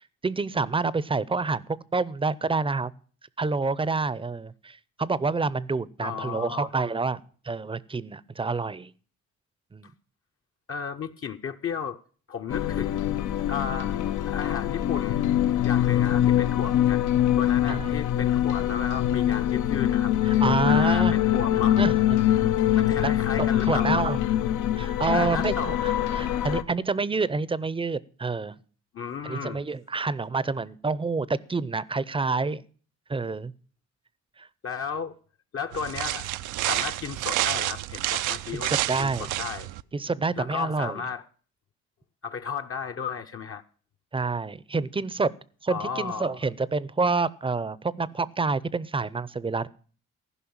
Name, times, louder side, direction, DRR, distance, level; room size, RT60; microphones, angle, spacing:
voice 1, 0.0-2.9 3.4-7.2 7.4-8.9 9.7-9.9 17.7-18.0 20.3-21.1 21.8-21.9 23.0-24.2 24.8-28.6 29.2-32.6 33.1-33.5 34.4-34.5 38.5-39.3 39.9-41.0 44.1-45.3 45.6-49.7, right 4 dB, 15° right, 0.6 m, -28 dB
voice 2, 6.0-6.7 9.8-9.9 10.7-12.0 12.3-13.2 13.5-14.0 14.3-15.2 15.6-17.1 17.4-21.8 22.3-24.1 25.1-25.8 28.9-29.7 34.6-35.2 35.5-36.3 36.6-38.7 39.0-39.7 40.4-41.3 42.2-43.6 45.7-46.4, left 6 dB, 45° left, 0.8 m, -34 dB
sound 1, 12.5-26.6, left 12 dB, 80° left, 0.8 m, -24 dB
sound 2, 35.7-39.8, right 15 dB, 80° right, 0.5 m, -29 dB
15.5 x 5.4 x 8.7 m
cardioid pair, 90°, 30 cm